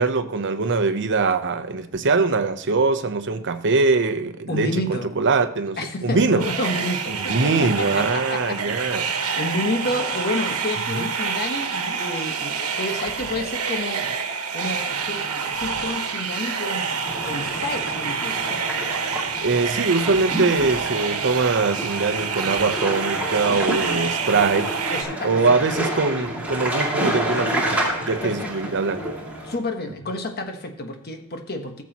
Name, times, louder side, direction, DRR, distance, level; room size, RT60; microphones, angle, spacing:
voice 1, 0.0-6.4 7.1-9.1 10.9-11.1 19.4-24.7 25.2-29.1, right 4 dB, 55° right, 0.8 m, -22 dB
voice 2, 4.5-5.1 5.8-14.0 14.5-18.6 24.9-25.4 28.2-28.7 29.4-31.8, left 1 dB, 45° left, 1.3 m, -30 dB
sound 1, 6.4-25.0, right 6 dB, 75° right, 1.3 m, -27 dB
sound 2, 17.0-29.6, right 1 dB, 5° right, 2.3 m, -29 dB
14.5 x 7.3 x 2.9 m
head